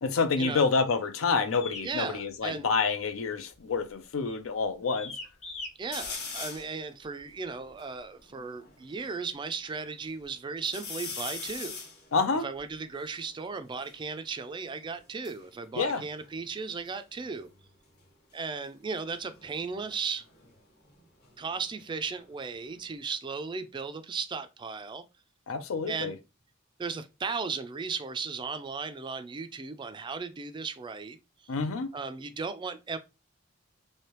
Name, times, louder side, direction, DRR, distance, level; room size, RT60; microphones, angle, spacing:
voice 1, 0.0-5.1 12.1-12.5 15.8-16.0 25.5-26.1 31.5-31.9, left 4 dB, 85° left, 0.5 m, -28 dB
sound 1, 1.5-1.9 2.7-3.1 3.4-3.7 4.2-4.5 4.9-5.7, left 3 dB, 35° left, 0.7 m, -41 dB
voice 2, 1.8-2.7 5.8-11.8 12.4-17.5 18.3-20.2 21.4-25.0 25.9-26.2 26.8-31.2 31.9-33.0, right 5 dB, 25° right, 0.3 m, -36 dB
sound 2, 5.9-6.8 7.3-7.4 7.6-9.1 9.7-10.2 10.6-14.0 15.0-16.9 17.1-17.6 19.2-21.8 22.2-23.0, left 5 dB, 50° left, 1.0 m, -43 dB
3.2 x 2.7 x 2.9 m
head